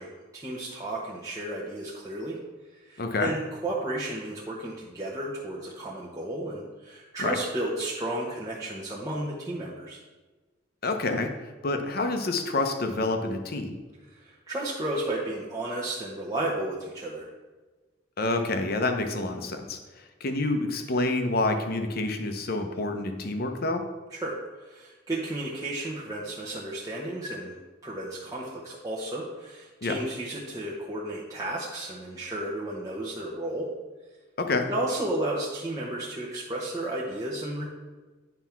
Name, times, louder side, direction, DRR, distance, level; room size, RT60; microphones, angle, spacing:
voice 1, 0.0-2.4 2.8-10.0 14.1-17.3 24.1-27.5 27.8-33.7 34.7-37.6, right 1 dB, 20° right, -6 dB, 0.9 m, -33 dB
voice 2, 3.0-3.3 7.2-7.4 10.8-11.3 11.6-13.8 18.2-19.8 20.2-23.8 29.8-29.9 34.4-34.7, left 2 dB, 55° left, 6 dB, 0.8 m, -27 dB
9.2 x 3.5 x 5.8 m, 1.3 s
head